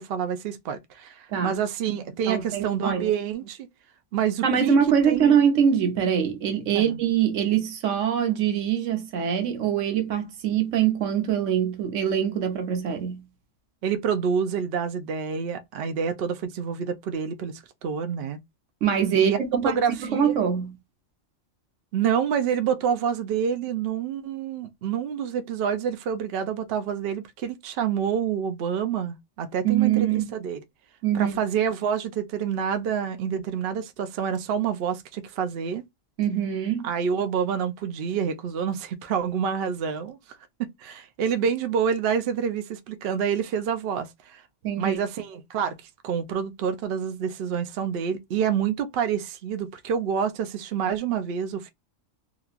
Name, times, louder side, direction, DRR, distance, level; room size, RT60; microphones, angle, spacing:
voice 1, 0.0-3.7 4.1-4.7 5.0-5.3 6.7-7.0 13.8-18.4 19.1-20.4 21.9-30.6 31.1-35.8 36.8-40.2 40.6-44.4 44.8-51.7, right 7 dB, 60° right, 0.7 m, -27 dB
voice 2, 2.3-3.1 4.4-13.2 18.8-20.8 29.6-30.3 31.0-31.4 36.2-36.9 44.6-45.0, right 8 dB, 80° right, 1.1 m, -23 dB
2.9 x 2.4 x 2.3 m
omnidirectional pair, 1.3 m